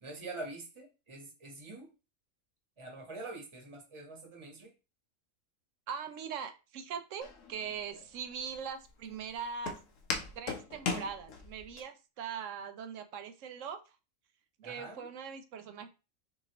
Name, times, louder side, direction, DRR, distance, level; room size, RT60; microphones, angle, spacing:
voice 1, 0.0-1.9 2.8-4.7 14.6-15.1, right 2 dB, 25° right, 1 dB, 1.2 m, -45 dB
voice 2, 5.9-9.8 10.4-13.8 14.6-15.9, right 7 dB, 70° right, 9 dB, 0.9 m, -41 dB
Walk footsteps, 7.2-11.8, left 4 dB, 70° left, 1.2 m, -39 dB
6.3 x 2.7 x 3.0 m, 0.30 s
omnidirectional pair, 1.4 m